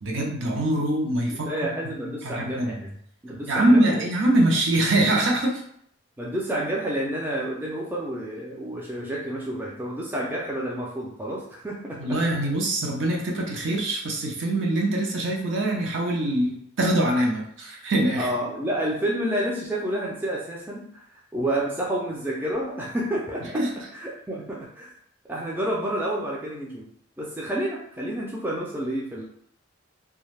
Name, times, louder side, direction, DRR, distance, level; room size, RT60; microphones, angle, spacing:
voice 1, 0.0-1.9 2.2-2.8 3.5-5.6 12.0-18.3 23.5-23.7, right 1 dB, 70° right, -1 dB, 0.7 m, -23 dB
voice 2, 1.3-2.9 3.2-4.0 6.2-12.2 18.2-20.9 21.3-23.7 23.9-24.9 25.3-26.9 27.2-29.2, right 1 dB, 10° right, -4 dB, 0.3 m, -29 dB
2.5 x 2.3 x 3.2 m, 0.68 s
head